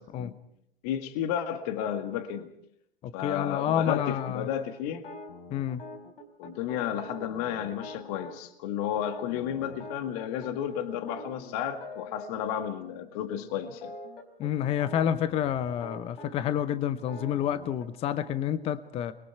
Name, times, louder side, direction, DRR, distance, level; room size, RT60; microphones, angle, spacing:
voice 1, 0.8-2.5 3.1-5.1 6.4-14.0, left 9 dB, 40° left, 8 dB, 1.9 m, -32 dB
voice 2, 3.0-4.5 5.5-5.8 14.4-19.1, left 10 dB, 20° left, 14 dB, 0.8 m, -29 dB
sound 1, 3.8-4.3 4.9-8.4 9.0-12.5 12.8-13.0 13.3-17.9, left 2 dB, 60° left, 4.0 m, -45 dB
29.5 x 22.0 x 4.6 m, 0.74 s
figure-of-eight pair, 110°, 31 cm